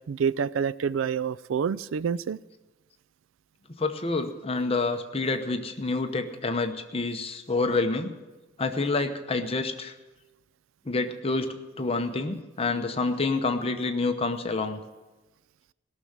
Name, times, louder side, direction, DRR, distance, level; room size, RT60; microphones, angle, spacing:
voice 1, 0.1-2.4, right 7 dB, 85° right, 18 dB, 0.4 m, -27 dB
voice 2, 3.8-8.1 8.6-9.9 10.8-11.5 11.8-14.8, left 3 dB, 30° left, 7 dB, 0.8 m, -28 dB
17.0 x 6.6 x 7.3 m, 1.1 s
head